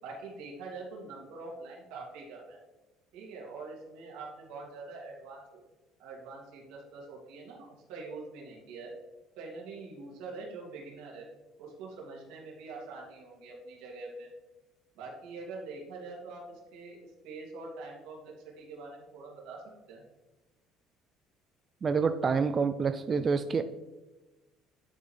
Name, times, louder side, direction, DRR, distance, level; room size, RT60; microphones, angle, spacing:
voice 1, 0.0-2.6 3.1-5.6 6.0-8.9 9.4-11.3 11.6-14.3 14.9-17.0 17.2-19.6 19.9-20.0, right 3 dB, 85° right, -2 dB, 2.2 m, -44 dB
voice 2, 21.8-23.6, right 5 dB, 30° right, 9 dB, 0.3 m, -27 dB
11.0 x 3.9 x 3.3 m, 1.1 s
cardioid pair, 120°, 0 cm